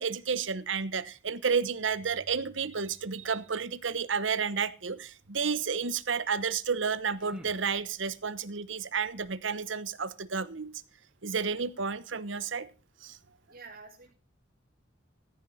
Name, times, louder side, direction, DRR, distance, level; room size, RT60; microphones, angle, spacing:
voice 1, 0.0-10.7 11.2-12.7, right 5 dB, 70° right, 16 dB, 1.0 m, -31 dB
sound 1, 1.7-4.9, equal, 55° left, 6.5 m, -61 dB
sound 2, 6.7-8.4, equal, 5° right, 1.6 m, -53 dB
voice 2, 13.5-14.1, right 4 dB, 50° right, -2 dB, 4.4 m, -48 dB
14.5 x 10.5 x 4.1 m, 0.32 s
head